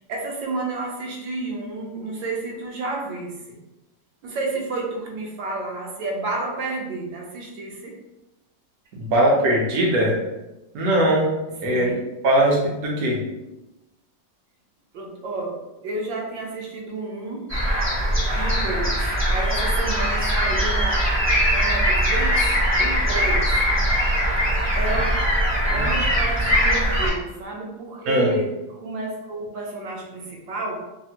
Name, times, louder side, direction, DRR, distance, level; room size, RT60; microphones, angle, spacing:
voice 1, 0.1-3.6 4.2-7.9 11.6-12.0 14.9-15.6 15.8-17.5 18.3-21.1 21.5-22.4 22.8-23.6 24.8-25.2 25.7-30.8, right 2 dB, 80° right, -1 dB, 1.3 m, -31 dB
voice 2, 8.9-10.2 10.7-11.3 11.6-11.9 12.2-13.2 25.7-25.8 28.1-28.3, right 1 dB, 65° right, -2 dB, 1.0 m, -20 dB
sound 1, 17.5-27.1, equal, 15° right, 0.5 m, -21 dB
3.4 x 2.0 x 2.8 m, 0.97 s
omnidirectional pair, 2.0 m